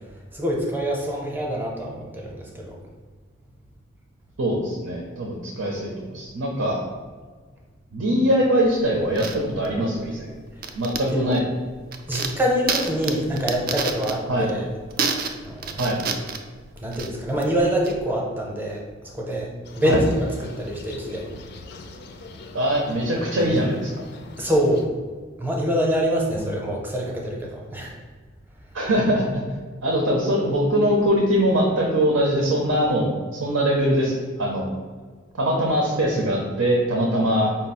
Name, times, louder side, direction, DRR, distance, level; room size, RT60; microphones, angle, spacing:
voice 1, 0.3-2.8 11.1-11.4 12.1-14.6 15.4-16.0 16.8-18.8 19.1-19.5 19.7-21.3 24.4-24.9 25.4-27.9, equal, 10° right, -1 dB, 0.6 m, -25 dB
voice 2, 4.4-6.8 7.9-10.3 10.7-11.4 14.3-14.5 15.8-16.0 19.8-20.0 22.5-23.9 26.4-26.5 28.7-29.4 29.8-34.7 35.4-37.5, equal, 90° right, -2 dB, 0.7 m, -22 dB
sound 1, 8.6-18.0, right 5 dB, 45° right, 0.3 m, -31 dB
sound 2, 19.6-24.9, left 2 dB, 50° left, 0.3 m, -36 dB
5.0 x 2.0 x 4.1 m, 1.5 s
head